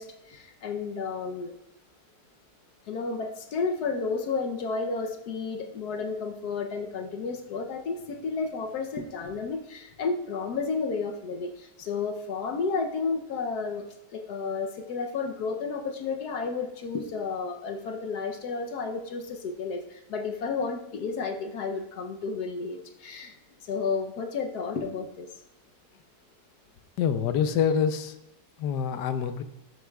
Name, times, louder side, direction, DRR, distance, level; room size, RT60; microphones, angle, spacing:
voice 1, 0.0-1.5 2.9-23.3 23.6-25.3, left 4 dB, 70° left, 5 dB, 1.2 m, -32 dB
voice 2, 27.0-28.2 28.6-29.4, left 7 dB, 85° left, 10 dB, 1.3 m, -26 dB
12.5 x 8.1 x 2.3 m, 0.91 s
omnidirectional pair, 1.8 m